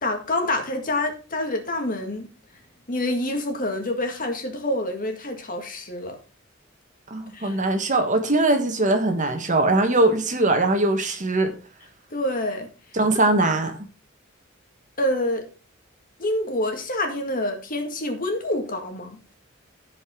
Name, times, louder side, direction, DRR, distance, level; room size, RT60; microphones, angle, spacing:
voice 1, 0.0-2.3 2.9-6.2 7.3-7.6 12.1-12.7 15.0-15.5 16.2-19.2, left 1 dB, 45° left, 1.9 m, -27 dB
voice 2, 7.1-11.5 12.9-13.8, right 2 dB, 40° right, 1.5 m, -21 dB
15.5 x 5.2 x 3.8 m
head